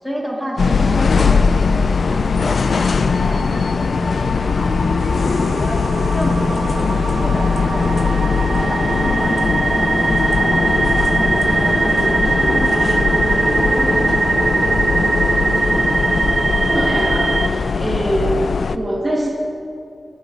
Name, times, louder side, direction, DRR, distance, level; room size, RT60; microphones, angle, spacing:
voice 1, 0.0-5.8 6.1-8.1 8.4-10.5 10.8-15.0, equal, 5° left, -3 dB, 2.7 m, -30 dB
sound 1, 0.6-18.8, left 5 dB, 85° left, 0.4 m, -19 dB
sound 2, 4.2-17.5, right 3 dB, 65° right, 0.6 m, -21 dB
voice 2, 16.6-18.4 18.7-19.3, right 1 dB, 30° right, -3 dB, 2.4 m, -23 dB
19.5 x 7.2 x 5.7 m, 2.4 s
wide cardioid pair, 90°, 0 cm